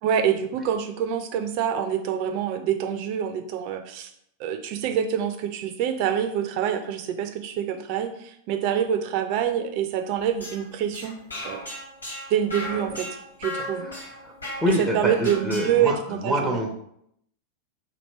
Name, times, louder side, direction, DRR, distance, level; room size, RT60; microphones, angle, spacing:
voice 1, 0.0-4.1 4.4-11.2 11.4-11.6 12.3-13.1 13.4-14.1 14.7-16.6, right 9 dB, 45° right, 7 dB, 0.5 m, -26 dB
sound 1, 10.1-15.9, left 1 dB, 80° left, 1.2 m, -37 dB
voice 2, 14.6-16.7, equal, 5° left, 0 dB, 0.7 m, -26 dB
2.9 x 2.8 x 4.3 m, 0.71 s
figure-of-eight pair, 90°, 0 cm